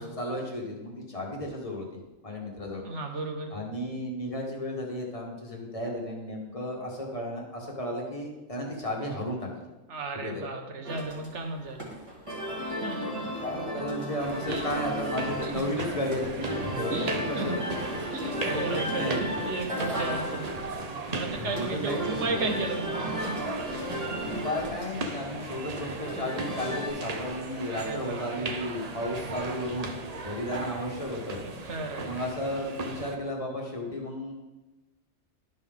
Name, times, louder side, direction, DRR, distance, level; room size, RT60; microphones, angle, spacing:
voice 1, 0.0-1.9 2.2-2.8 3.5-9.5 10.2-10.4 13.4-17.6 18.5-19.4 20.6-20.7 21.3-22.3 24.2-29.9 30.2-31.4 32.0-34.3, left 1 dB, 25° left, -1 dB, 1.5 m, -34 dB
voice 2, 2.8-3.5 9.9-11.9 12.6-13.3 14.5-14.7 15.4-15.7 16.9-17.5 18.1-20.5 21.1-23.2 27.7-28.5 31.4-32.1, right 3 dB, 60° right, 4 dB, 1.3 m, -34 dB
sound 1, 10.8-26.9, equal, 25° right, 1.8 m, -35 dB
sound 2, 14.2-33.1, right 3 dB, 40° right, 0.6 m, -37 dB
11.5 x 5.6 x 3.5 m, 1.1 s
omnidirectional pair, 1.4 m